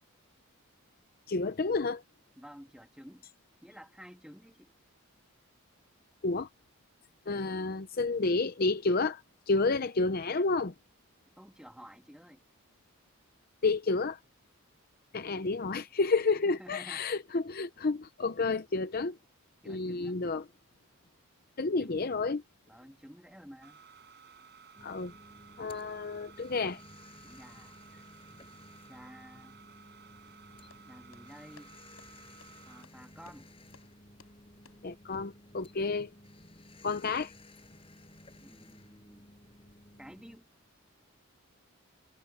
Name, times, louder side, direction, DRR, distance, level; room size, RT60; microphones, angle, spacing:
voice 1, 1.3-2.0 6.2-6.5 7.3-10.7 13.6-14.2 15.1-19.2 19.7-20.4 21.6-22.4 24.8-25.1 25.6-26.8 34.8-36.1 36.8-37.3, left 3 dB, 40° left, 0.6 m, -30 dB
voice 2, 2.4-3.3 3.6-4.8 11.3-12.4 15.3-15.4 16.3-17.1 19.6-20.2 21.8-22.0 22.7-23.8 27.2-28.1 28.9-29.6 30.9-31.7 32.7-33.5 38.4-39.3 40.0-40.5, equal, 5° right, 3.0 m, -52 dB
sound 1, 23.6-32.8, right 6 dB, 50° right, 5.9 m, -56 dB
sound 2, 24.8-40.4, left 1 dB, 25° left, 6.4 m, -55 dB
sound 3, 30.3-35.2, left 4 dB, 70° left, 6.2 m, -62 dB
head